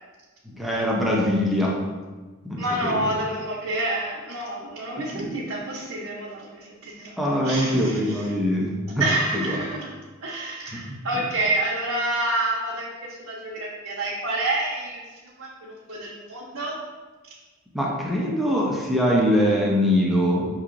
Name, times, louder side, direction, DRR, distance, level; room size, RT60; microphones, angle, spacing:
voice 1, 0.5-1.8 2.4-3.1 5.1-5.3 7.2-9.0 9.3-9.4 10.7-11.0 17.7-20.5, equal, ahead, -4 dB, 0.6 m, -23 dB
voice 2, 2.6-7.2 7.4-8.3 9.0-9.9 10.2-16.8, right 2 dB, 70° right, -5 dB, 0.7 m, -28 dB
6.3 x 2.9 x 2.5 m, 1.3 s
head